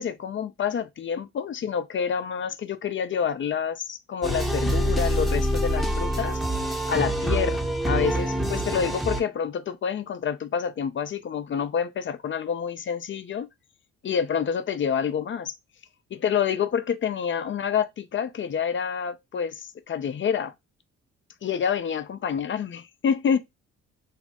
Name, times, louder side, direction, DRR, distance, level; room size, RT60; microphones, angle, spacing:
voice 1, 0.0-6.4 6.9-7.6 7.9-13.5 14.0-15.5 16.1-20.5 21.4-23.4, left 7 dB, 35° left, 0.5 m, -28 dB
sound 1, 4.2-9.2, equal, ahead, 0.7 m, -25 dB
3.2 x 2.1 x 2.8 m
hypercardioid pair, 55°, 33 cm